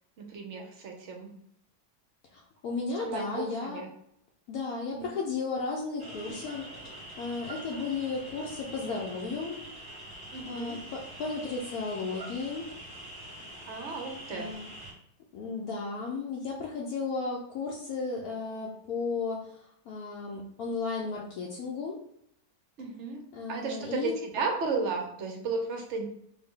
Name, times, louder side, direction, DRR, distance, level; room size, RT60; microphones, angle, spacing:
voice 1, 0.2-1.4 3.0-3.9 4.9-5.2 10.3-10.8 13.7-14.5 22.8-26.1, right 4 dB, 60° right, 2 dB, 0.8 m, -34 dB
voice 2, 2.3-3.8 4.5-9.7 10.5-12.7 14.3-14.7 15.3-22.0 23.3-24.1, left 4 dB, 75° left, -2 dB, 1.0 m, -34 dB
sound 1, 6.0-14.9, right 1 dB, 15° right, 1.0 m, -44 dB
3.4 x 2.6 x 3.6 m, 0.71 s
omnidirectional pair, 1.7 m